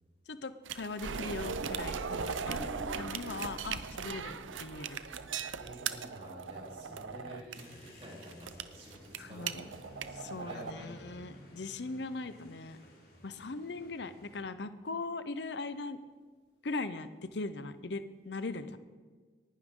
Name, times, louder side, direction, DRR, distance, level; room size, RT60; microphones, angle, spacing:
voice 1, 0.3-5.0 9.2-9.7 10.1-12.8 13.2-16.0 16.6-18.8, left 3 dB, 65° left, 12 dB, 0.7 m, -40 dB
sound 1, 0.6-10.7, right 6 dB, 90° right, 0.6 m, -39 dB
sound 2, 2.4-9.4 9.7-9.8, left 1 dB, 10° left, 0.4 m, -52 dB
voice 2, 5.6-11.3, equal, 30° right, -4 dB, 3.4 m, -50 dB
sound 3, 7.5-14.4, left 1 dB, 50° left, 3.2 m, -55 dB
19.0 x 11.0 x 3.8 m, 1.5 s
head